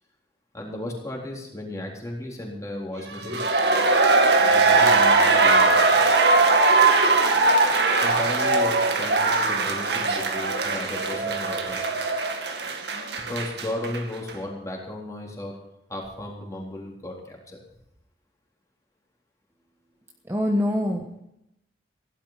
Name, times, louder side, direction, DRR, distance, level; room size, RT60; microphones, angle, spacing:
voice 1, 0.5-3.4 4.5-6.0 8.0-11.8 13.2-15.6 15.9-17.6, left 1 dB, 15° left, -1 dB, 3.8 m, -35 dB
sound 1, 3.1-14.0 14.3-14.4, right 3 dB, 65° right, 2.0 m, -20 dB
voice 2, 20.3-21.2, left 1 dB, 15° right, 0 dB, 1.3 m, -24 dB
16.5 x 12.0 x 5.8 m, 0.81 s
head